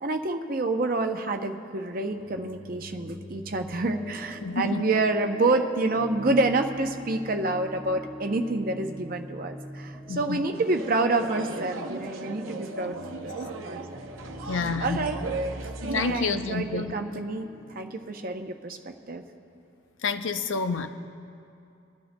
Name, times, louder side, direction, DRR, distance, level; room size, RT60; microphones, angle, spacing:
voice 1, 0.0-14.0 14.8-15.2 15.8-17.5 17.7-18.8 19.1-19.2, right 2 dB, 45° right, 5 dB, 0.6 m, -28 dB
sound 1, 1.9-17.9, equal, 5° left, 1.2 m, -43 dB
voice 2, 4.4-4.8 10.1-10.5 12.7-12.9 14.5-15.1 15.9-16.9 20.0-20.9, left 4 dB, 70° left, 8 dB, 0.6 m, -29 dB
sound 2, 10.5-16.2, right 3 dB, 80° right, 0.7 m, -37 dB
26.5 x 11.5 x 2.2 m, 2.7 s
head